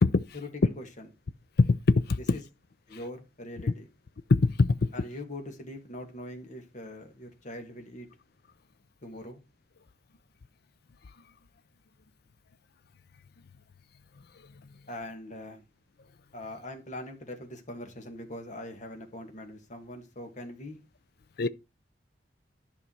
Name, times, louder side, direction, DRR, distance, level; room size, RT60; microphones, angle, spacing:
voice 1, 0.3-1.1 2.3-2.4 2.9-3.9 4.9-8.1 9.0-9.4 14.9-15.6 16.3-20.8, left 1 dB, 45° left, 2.2 m, -42 dB
voice 2, 1.6-2.2 4.3-4.9 21.4-21.5, left 3 dB, 60° left, 0.5 m, -22 dB
11.5 x 5.5 x 4.7 m
head